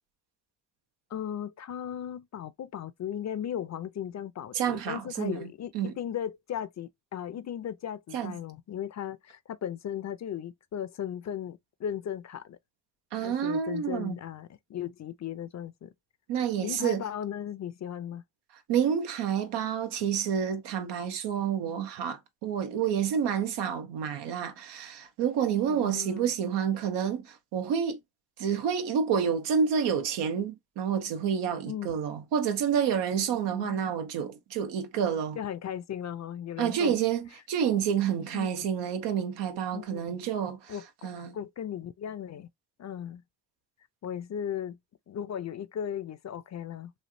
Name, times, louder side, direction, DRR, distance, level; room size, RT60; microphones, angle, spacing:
voice 1, 1.1-12.6 13.2-15.9 16.6-18.2 25.7-26.3 31.6-31.9 33.5-33.9 35.4-37.0 38.3-38.7 39.7-40.3 40.7-40.9 41.3-42.5 42.8-43.2 44.0-44.8 45.1-46.9, left 9 dB, 45° left, 0.5 m, -36 dB
voice 2, 4.5-5.5 5.7-5.9 8.1-8.3 13.1-14.2 16.3-17.0 18.7-28.0 28.4-35.4 36.6-40.7 41.0-41.4, right 8 dB, 85° right, 0.8 m, -29 dB
3.2 x 2.4 x 2.6 m
supercardioid pair, 50°, 41 cm